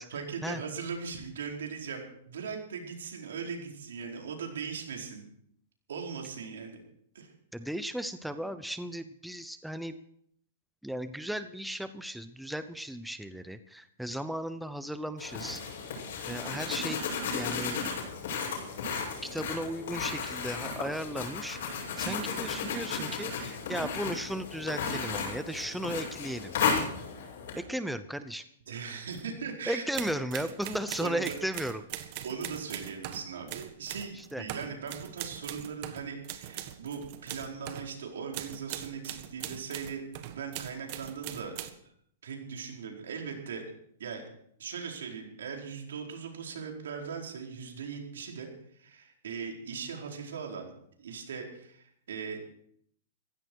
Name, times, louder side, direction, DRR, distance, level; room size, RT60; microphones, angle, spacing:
voice 1, 0.0-5.3 5.9-6.8 7.1-7.3 28.7-29.8 30.6-30.7 31.0-31.3 32.2-40.0 40.3-41.6 41.8-41.9 42.2-43.6 44.0-44.2 44.6-50.7 51.0-52.5, right 6 dB, 80° right, 1 dB, 4.5 m, -39 dB
voice 2, 7.5-10.0 10.8-15.6 16.3-17.1 17.3-17.8 19.2-26.5 27.6-28.4 29.7-31.8 34.1-34.4, equal, ahead, 10 dB, 0.7 m, -35 dB
sound 1, 15.2-27.6, left 5 dB, 60° left, 7.7 m, -34 dB
sound 2, 29.1-29.3 29.9-37.9 38.3-41.7, right 13 dB, 45° right, 1.6 m, -41 dB
16.0 x 15.5 x 4.7 m, 0.69 s
hypercardioid pair, 140°, 0 cm